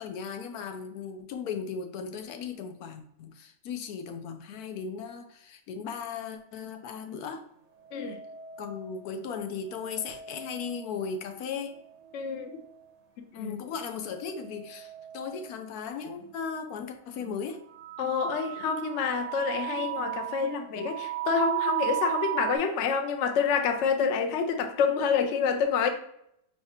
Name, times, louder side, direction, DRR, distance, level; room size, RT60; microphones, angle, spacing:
voice 1, 0.0-7.4 8.6-11.8 13.3-17.6, left 6 dB, 85° left, 6 dB, 1.1 m, -37 dB
sound 1, 7.8-9.1 9.7-11.3 11.7-12.9 13.9-15.6 16.2-16.3 17.2-17.4 17.7-22.6, right 14 dB, 70° right, 0.9 m, -36 dB
voice 2, 12.1-12.6 13.4-13.6 18.0-25.9, left 6 dB, 65° left, 5 dB, 0.8 m, -27 dB
4.7 x 3.2 x 2.8 m, 0.72 s
omnidirectional pair, 1.5 m